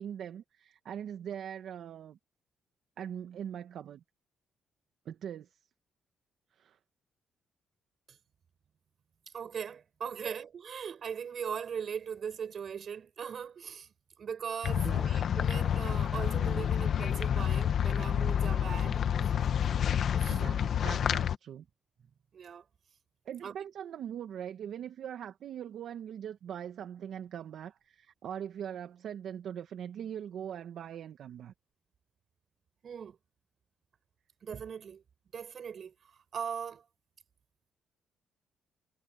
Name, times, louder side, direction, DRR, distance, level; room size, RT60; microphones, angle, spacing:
voice 1, 0.0-2.2 3.0-4.0 5.0-5.5 6.5-6.8 14.7-15.1 20.3-21.6 23.2-31.5, right 9 dB, 70° right, 1.5 m, -41 dB
voice 2, 9.3-13.9 14.2-19.9 20.1-20.7 22.3-22.6 23.4-23.6 32.8-33.2 34.4-35.0 35.3-36.8, right 7 dB, 55° right, 6.5 m, -40 dB
sound 1, 14.6-21.4, left 9 dB, 60° left, 1.2 m, -29 dB
cardioid pair, 90°, 0 cm